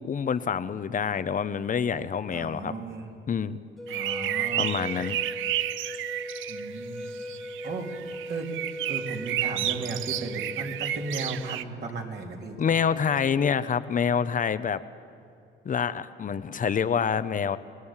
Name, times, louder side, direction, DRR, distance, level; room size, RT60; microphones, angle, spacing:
voice 1, 0.0-2.7 3.3-3.6 4.6-5.2 12.6-14.8 15.6-17.6, left 7 dB, 40° left, 14 dB, 0.8 m, -27 dB
voice 2, 2.3-3.1 3.9-4.8 6.5-7.1 7.6-8.5 8.9-12.6, right 3 dB, 55° right, 1 dB, 3.3 m, -36 dB
sound 1, 3.8-11.6, left 1 dB, ahead, 1.6 m, -39 dB
sound 2, 3.9-6.8 7.2-11.6, right 13 dB, 80° right, 0.6 m, -31 dB
27.5 x 18.5 x 7.4 m, 2.5 s
cardioid pair, 90°, 20 cm